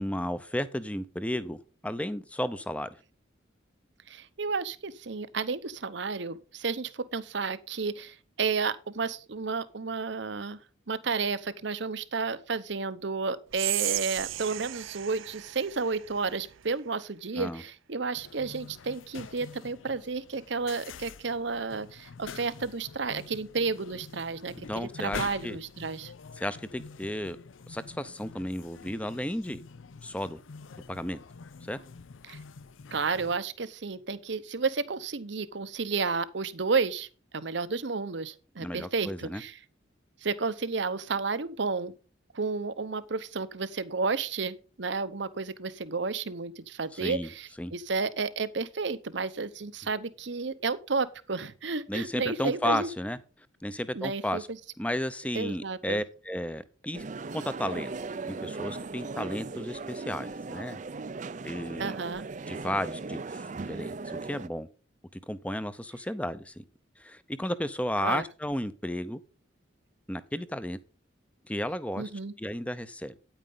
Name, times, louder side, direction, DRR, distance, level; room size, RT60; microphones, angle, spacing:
voice 1, 0.0-2.9 17.3-17.6 24.7-25.6 26.4-27.4 27.7-29.6 30.0-30.4 30.9-31.2 31.7-31.8 38.6-39.4 46.9-47.3 47.6-47.7 51.9-53.2 53.6-54.5 54.8-57.0 57.3-57.9 58.3-60.8 61.4-61.9 62.5-64.7 65.3-66.6 67.0-69.2 70.1-70.8 71.5-72.1 72.4-73.1, left 1 dB, 5° left, 0.7 m, -33 dB
voice 2, 4.1-10.6 10.9-26.1 32.2-32.4 32.9-37.1 37.3-39.6 40.2-41.9 42.3-52.9 53.9-54.4 55.3-56.0 61.8-62.3 68.0-68.2 72.0-72.3, right 4 dB, 65° right, 0.9 m, -32 dB
Whispering, 13.5-16.7, right 16 dB, 90° right, 0.5 m, -35 dB
sound 1, 18.1-33.4, left 5 dB, 85° left, 0.5 m, -46 dB
sound 2, 56.9-64.5, right 3 dB, 40° right, 0.5 m, -38 dB
9.7 x 9.1 x 3.9 m
head